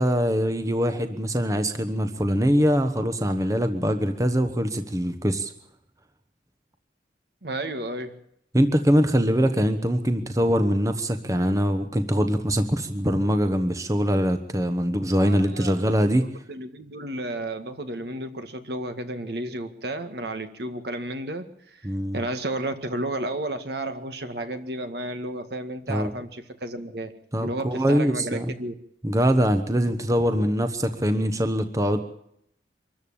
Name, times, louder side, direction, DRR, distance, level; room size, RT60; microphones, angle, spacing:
voice 1, 0.0-5.5 8.5-16.2 21.8-22.2 25.9-26.1 27.3-28.5 29.0-32.0, equal, 20° right, 8 dB, 1.1 m, -23 dB
voice 2, 7.4-8.2 15.2-21.9 22.1-27.1 27.4-28.7, right 1 dB, 65° right, 8 dB, 1.9 m, -32 dB
25.0 x 14.0 x 8.8 m, 0.74 s
head